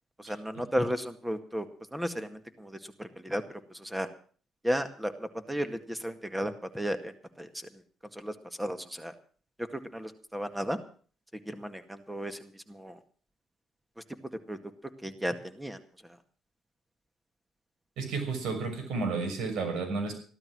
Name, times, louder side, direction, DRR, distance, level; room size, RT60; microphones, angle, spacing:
voice 1, 0.2-1.7 1.9-3.4 3.7-4.1 4.6-7.8 8.1-9.1 9.6-10.8 11.5-13.0 14.5-14.6 15.0-16.2, equal, 5° right, 9 dB, 2.0 m, -34 dB
voice 2, 18.0-20.1, right 4 dB, 75° right, 5 dB, 6.1 m, -31 dB
14.5 x 12.5 x 6.2 m, 0.43 s
cardioid pair, 95°, 0 cm